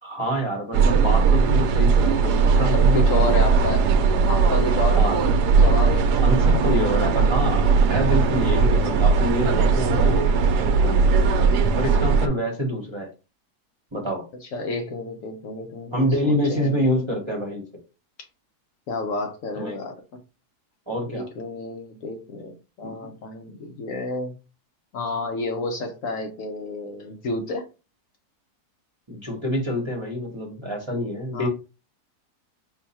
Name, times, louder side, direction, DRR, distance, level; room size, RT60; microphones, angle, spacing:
voice 1, 0.0-3.6 4.9-5.2 6.2-11.1 11.8-13.1 13.9-14.3 15.9-17.6 19.6-19.8 20.9-21.3 22.8-23.1 29.1-31.5, equal, 20° right, 0.9 m, -27 dB
sound 1, 0.7-12.3, right 5 dB, 80° right, 1.1 m, -18 dB
voice 2, 2.7-3.9 4.3-5.1 5.6-6.1 6.5-7.0 14.4-16.9 18.9-20.2 21.1-24.3 24.9-27.7 31.3-31.5, left 2 dB, 65° left, 1.0 m, -30 dB
4.6 x 2.2 x 4.1 m
omnidirectional pair, 1.7 m